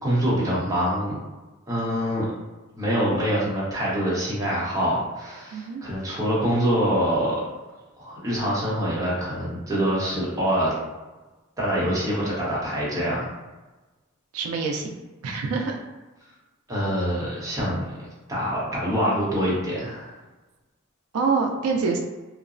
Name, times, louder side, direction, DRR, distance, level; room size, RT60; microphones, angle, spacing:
voice 1, 0.0-1.2 1.7-2.3 2.7-7.4 8.0-10.7 11.6-13.3 16.7-18.0 18.3-20.1, equal, 15° right, -7 dB, 0.8 m, -25 dB
voice 2, 5.5-5.8 14.3-15.0 15.2-15.8 21.1-22.0, right 4 dB, 85° right, 1 dB, 0.4 m, -25 dB
2.9 x 2.0 x 2.5 m, 1.1 s
head